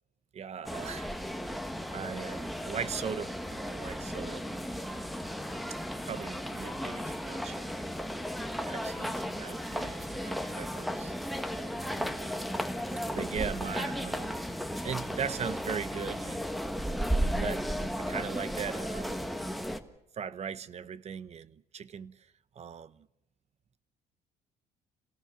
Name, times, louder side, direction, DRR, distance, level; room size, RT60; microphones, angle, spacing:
voice 1, 0.3-1.1 1.9-4.8 5.7-8.0 8.6-11.1 11.7-12.2 13.1-14.4 14.8-16.5 17.0-17.6 17.9-19.2 20.1-23.1, right 7 dB, 40° right, 0.9 m, -39 dB
sound 1, 0.7-19.8, equal, ahead, 1.4 m, -35 dB
26.5 x 18.0 x 7.0 m
cardioid pair, 110°, 17 cm